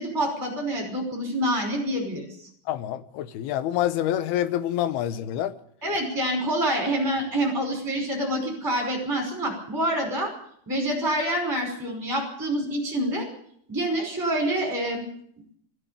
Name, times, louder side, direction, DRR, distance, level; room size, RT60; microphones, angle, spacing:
voice 1, 0.0-2.3 5.8-10.3 10.7-13.3 13.7-15.0, right 1 dB, 5° right, 4.6 m, -27 dB
voice 2, 2.7-5.5, left 12 dB, 75° left, 2.5 m, -27 dB
21.0 x 14.5 x 8.4 m
omnidirectional pair, 5.3 m